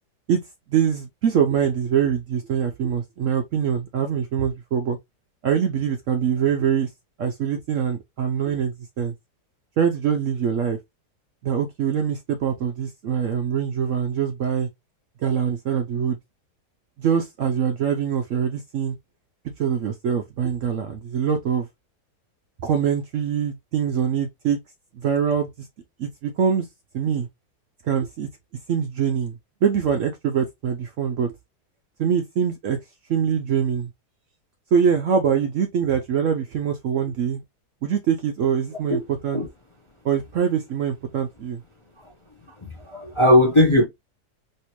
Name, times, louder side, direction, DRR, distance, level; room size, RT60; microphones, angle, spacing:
voice 1, 0.7-5.0 5.4-6.9 7.2-9.1 9.8-10.8 11.4-14.7 15.2-16.2 17.0-19.0 19.6-21.7 22.6-24.6 24.9-25.7 26.0-26.7 26.9-27.3 27.9-28.3 28.7-31.3 32.0-32.8 33.1-33.9 34.7-37.4 37.8-39.4 40.0-41.6, right 7 dB, 65° right, 0.8 m, -23 dB
voice 2, 42.8-43.8, left 1 dB, 30° left, 0.6 m, -17 dB
3.3 x 2.8 x 2.9 m
omnidirectional pair, 1.8 m